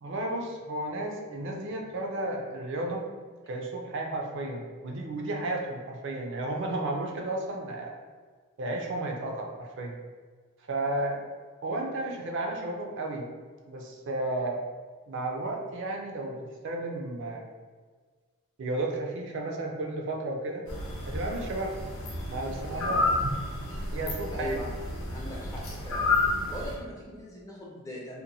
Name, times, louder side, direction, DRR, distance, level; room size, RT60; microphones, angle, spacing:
voice 1, 0.0-3.1 3.5-8.0 8.6-10.0 10.7-11.2 11.6-13.3 13.7-14.6 15.1-17.5 18.6-20.6 21.1-21.9 22.2-23.3 23.9-24.6, right 2 dB, 55° right, 1 dB, 0.4 m, -33 dB
sound 1, 20.7-26.8, left 2 dB, 65° left, 0.6 m, -31 dB
voice 2, 22.7-23.1 24.3-24.7 25.1-26.2 26.5-28.2, equal, 15° left, -4 dB, 0.4 m, -40 dB
2.8 x 2.1 x 2.6 m, 1.5 s
head